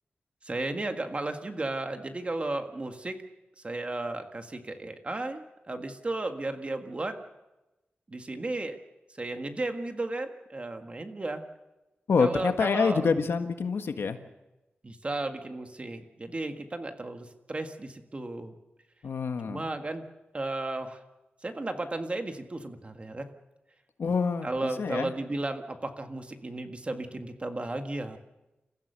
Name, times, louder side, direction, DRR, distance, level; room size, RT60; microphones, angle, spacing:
voice 1, 0.4-3.2 3.6-7.2 8.1-8.8 9.2-11.4 12.2-13.1 14.8-18.5 19.4-20.0 20.3-21.0 21.4-23.3 24.4-28.2, right 2 dB, 30° right, 6 dB, 1.7 m, -34 dB
voice 2, 12.1-14.2 19.0-19.6 24.0-24.5 24.8-25.1, left 5 dB, 85° left, 7 dB, 1.6 m, -26 dB
29.0 x 15.0 x 6.8 m, 1.0 s
wide cardioid pair, 130°, 4 cm